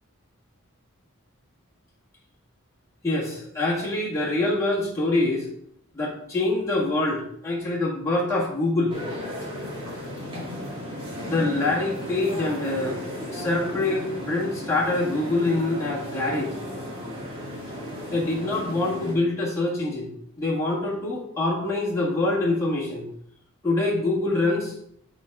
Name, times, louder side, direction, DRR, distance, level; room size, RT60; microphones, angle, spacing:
voice 1, 3.0-5.5 5.9-9.0 11.3-13.0 13.3-16.5 18.1-20.1 20.4-23.1 23.6-24.7, left 2 dB, 15° left, -6 dB, 1.7 m, -25 dB
sound 1, 8.9-19.1, equal, 25° right, 2.1 m, -34 dB
7.5 x 4.6 x 3.7 m, 0.69 s
head